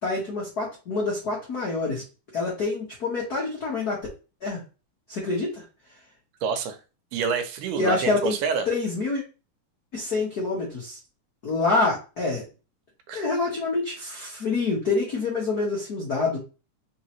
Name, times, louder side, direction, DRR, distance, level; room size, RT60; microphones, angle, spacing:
voice 1, 0.0-2.0 2.3-4.0 4.4-4.6 5.1-5.6 7.8-8.3 8.7-9.2 9.9-11.0 11.4-12.4 13.1-16.4, left 3 dB, 65° left, 0.9 m, -26 dB
voice 2, 6.4-6.8 7.1-8.7 13.1-13.2, right 6 dB, 80° right, 2.2 m, -27 dB
4.7 x 3.6 x 3.0 m
omnidirectional pair, 3.7 m